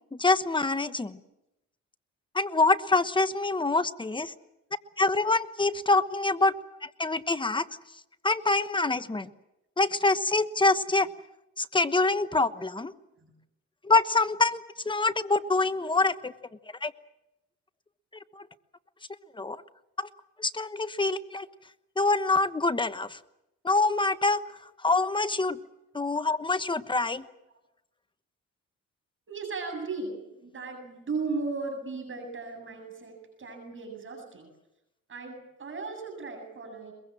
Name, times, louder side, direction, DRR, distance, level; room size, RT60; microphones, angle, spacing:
voice 1, 0.1-1.2 2.3-4.3 5.0-6.5 6.8-7.7 8.2-9.3 9.8-11.1 11.6-12.9 13.8-16.3 16.8-16.9 18.4-18.5 19.3-19.6 20.0-20.1 20.4-21.5 22.0-23.2 23.6-24.4 24.8-25.6 25.9-27.2, left 3 dB, 15° left, 11 dB, 1.1 m, -25 dB
voice 2, 29.3-34.5 35.1-36.9, right 4 dB, 40° right, 4 dB, 7.9 m, -36 dB
22.5 x 22.0 x 7.6 m, 0.89 s
cardioid pair, 90°, 30 cm